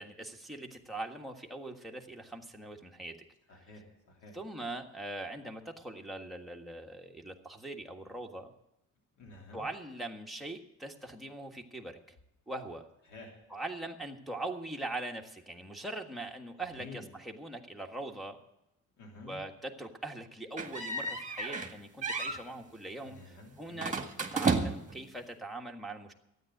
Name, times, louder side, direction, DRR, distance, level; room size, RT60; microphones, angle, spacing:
voice 1, 0.0-3.2 4.3-8.5 9.5-12.1 12.5-12.9 13.5-18.4 19.3-23.9 24.3-26.1, right 2 dB, ahead, 0 dB, 1.6 m, -41 dB
voice 2, 3.5-4.4 9.2-9.7 13.0-13.3 16.6-17.1 19.0-19.4 23.0-24.0, left 2 dB, 90° left, 0 dB, 3.2 m, -50 dB
sound 1, 20.6-21.7 22.0-22.4 23.8-25.0, right 4 dB, 25° right, 1.8 m, -32 dB
13.0 x 9.5 x 7.9 m, 0.86 s
cardioid pair, 90°, 30 cm